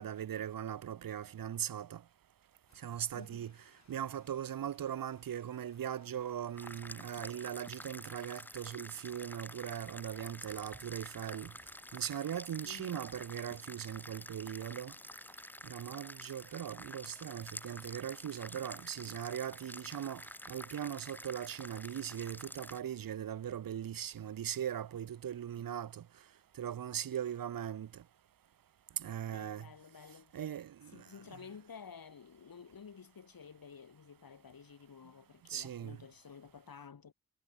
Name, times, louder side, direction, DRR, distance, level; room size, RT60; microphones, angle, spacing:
voice 1, 0.0-2.0 2.8-3.5 3.9-11.5 11.9-14.9 15.6-26.0 26.6-28.0 29.0-29.7 30.3-31.0 35.5-36.0, right 10 dB, 75° right, 0.7 m, -40 dB
sound 1, 2.7-22.4, left 4 dB, 50° left, 6.3 m, -69 dB
voice 2, 3.1-3.5 12.6-13.0 25.5-25.6 29.3-30.4 30.9-37.1, left 6 dB, 80° left, 7.1 m, -52 dB
sound 2, 6.6-22.8, left 1 dB, 5° left, 0.9 m, -49 dB
wide cardioid pair, 105°, 34 cm